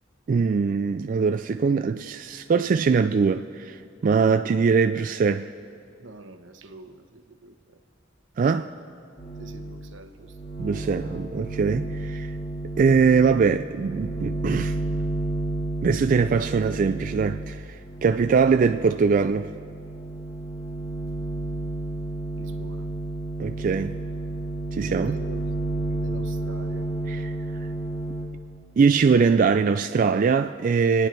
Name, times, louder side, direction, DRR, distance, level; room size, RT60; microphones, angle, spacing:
voice 1, 0.3-5.5 8.4-8.7 10.6-12.3 12.8-14.8 15.8-19.5 23.4-23.9 24.7-25.2 27.1-27.4 28.8-31.1, right 5 dB, 45° right, 0.3 m, -22 dB
voice 2, 6.0-7.8 9.4-10.3 22.3-22.9 24.9-25.5 25.9-26.9, right 2 dB, 80° right, 1.0 m, -45 dB
sound 1, 9.2-9.8 10.1-28.2, right 2 dB, 30° left, 2.9 m, -31 dB
26.5 x 9.8 x 4.5 m
head